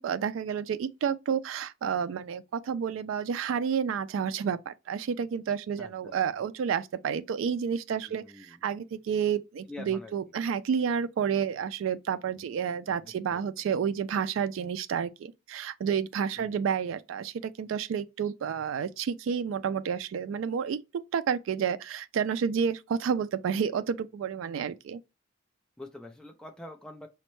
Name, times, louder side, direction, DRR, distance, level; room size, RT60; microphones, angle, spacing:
voice 1, 0.0-20.8 21.1-25.0, right 7 dB, 80° right, 0.3 m, -30 dB
voice 2, 5.8-6.2 8.0-8.7 9.7-10.2 12.2-13.4 16.4-16.6 25.8-27.1, left 2 dB, 5° left, 0.4 m, -46 dB
5.1 x 2.1 x 3.0 m
head